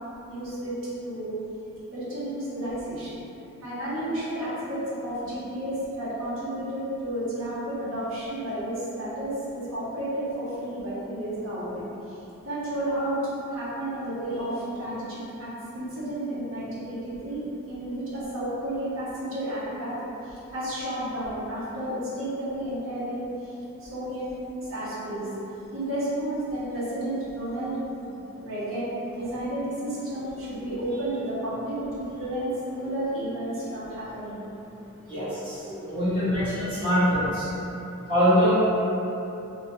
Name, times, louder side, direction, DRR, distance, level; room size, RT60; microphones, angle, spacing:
voice 1, 0.3-0.8 1.0-1.3 1.9-3.2 3.6-13.2 13.5-17.4 17.7-19.9 20.2-24.3 24.7-25.3 25.7-34.4 35.1-35.3 36.3-36.4, right 1 dB, 60° right, -10 dB, 0.9 m, -32 dB
voice 2, 35.8-37.4 38.1-38.5, equal, 20° right, -16 dB, 1.0 m, -22 dB
2.7 x 2.2 x 3.0 m, 3.0 s
head